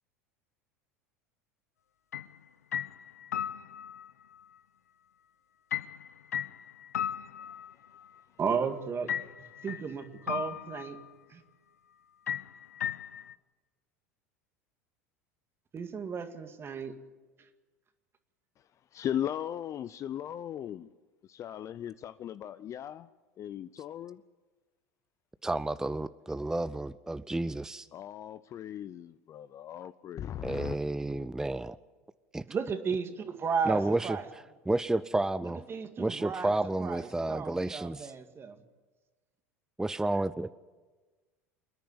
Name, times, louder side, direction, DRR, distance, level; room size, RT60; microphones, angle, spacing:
sound 1, 2.1-2.4 2.7-4.1 5.7-8.0 9.1-9.9 10.3-11.1 12.3-13.3, left 9 dB, 85° left, 0.7 m, -36 dB
voice 1, 8.4-9.1 9.6-11.0 11.3-11.4 15.7-16.9 32.5-34.3 35.7-36.5 36.8-38.6, right 6 dB, 30° right, 2.1 m, -34 dB
voice 2, 18.9-20.9 21.2-23.1 23.4-24.2 27.9-30.8, left 10 dB, 40° left, 0.6 m, -38 dB
voice 3, 25.4-27.9 30.4-31.8 32.3-32.4 33.6-35.6 36.0-38.1 39.8-40.5, right 2 dB, 5° right, 0.6 m, -31 dB
27.5 x 10.5 x 9.7 m
hypercardioid pair, 80°, 8 cm